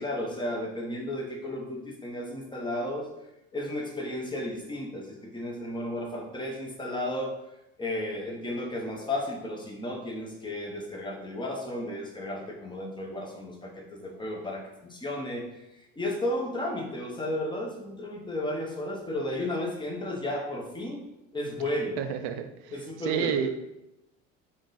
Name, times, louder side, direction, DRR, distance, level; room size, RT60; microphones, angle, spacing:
voice 1, 0.0-3.1 3.5-7.3 7.8-15.5 15.9-21.1 21.3-22.0 22.7-23.5, left 1 dB, 15° left, 0 dB, 0.8 m, -33 dB
voice 2, 22.0-23.5, right 9 dB, 70° right, 9 dB, 0.4 m, -30 dB
3.6 x 2.6 x 3.9 m, 0.90 s
supercardioid pair, 90°, 32 cm